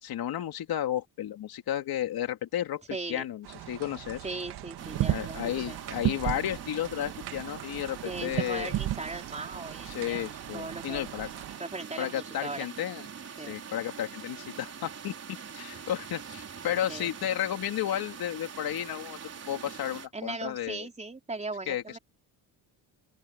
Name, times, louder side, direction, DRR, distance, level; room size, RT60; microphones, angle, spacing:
voice 1, 0.0-2.8 3.1-4.2 5.1-8.8 9.9-11.3 12.0-13.1 13.5-19.2 19.5-20.9 21.7-22.0, left 11 dB, 70° left, 2.8 m, -33 dB
voice 2, 2.9-3.3 4.2-5.4 5.7-5.8 8.0-10.3 10.5-11.1 11.6-12.7 13.4-13.6 16.9-17.1 20.1-22.0, right 3 dB, 20° right, 4.4 m, -38 dB
sound 1, 3.4-11.6, right 14 dB, 85° right, 2.3 m, -35 dB
sound 2, 4.8-20.1, right 6 dB, 40° right, 4.8 m, -44 dB
open air
cardioid pair, 120°, 38 cm